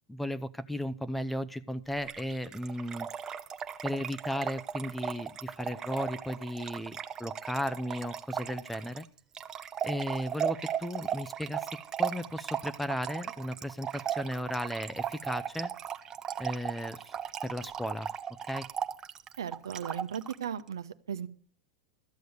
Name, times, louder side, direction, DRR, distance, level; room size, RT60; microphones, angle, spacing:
voice 1, 0.1-3.1 3.8-9.1 9.8-15.7 16.4-17.1 17.4-18.1 18.4-18.7, equal, 5° left, 14 dB, 0.7 m, -35 dB
Trickle dribble / Fill (with liquid), 2.0-20.4, right 8 dB, 30° right, 0.9 m, -37 dB
voice 2, 19.4-21.3, right 8 dB, 85° right, 10 dB, 1.0 m, -36 dB
13.5 x 7.9 x 6.7 m, 0.41 s
hypercardioid pair, 105°, 2 cm